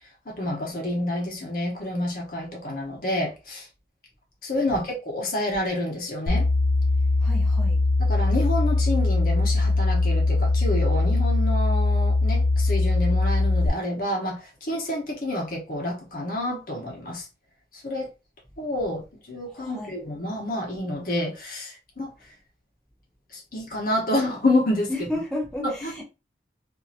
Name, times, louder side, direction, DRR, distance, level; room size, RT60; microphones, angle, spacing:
voice 1, 0.2-3.7 4.4-6.5 8.0-17.3 17.7-18.1 18.6-22.1 23.3-24.9 25.6-25.9, left 1 dB, 50° left, 1.0 m, -28 dB
sound 1, 6.3-13.7, left 2 dB, 75° left, 0.5 m, -21 dB
voice 2, 7.2-7.8 19.6-19.9 24.9-26.0, left 1 dB, ahead, 0.8 m, -32 dB
2.8 x 2.7 x 2.4 m
head